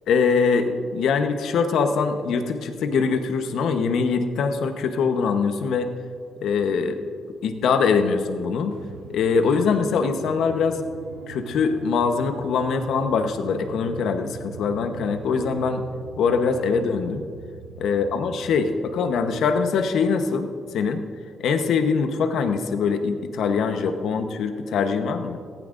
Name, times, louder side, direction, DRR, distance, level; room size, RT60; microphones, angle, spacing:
voice 1, 0.1-5.9 6.4-7.0 7.4-8.7 9.1-10.8 11.3-15.8 16.2-17.2 17.8-21.0 21.4-25.4, left 5 dB, 75° left, 7 dB, 1.0 m, -23 dB
sound 1, 8.7-20.9, right 6 dB, 75° right, 0.7 m, -43 dB
19.5 x 15.5 x 2.6 m, 2.2 s
cardioid pair, 90°, 0 cm